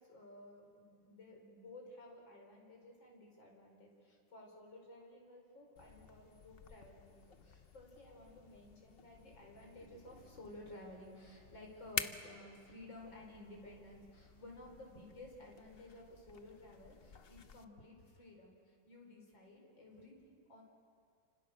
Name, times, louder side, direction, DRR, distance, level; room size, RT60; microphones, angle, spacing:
voice 1, 0.0-20.6, left 1 dB, 85° left, 0 dB, 5.8 m, -55 dB
sound 1, 5.8-17.6, left 6 dB, 50° left, 0.7 m, -50 dB
30.0 x 26.0 x 6.7 m, 2.2 s
omnidirectional pair, 2.0 m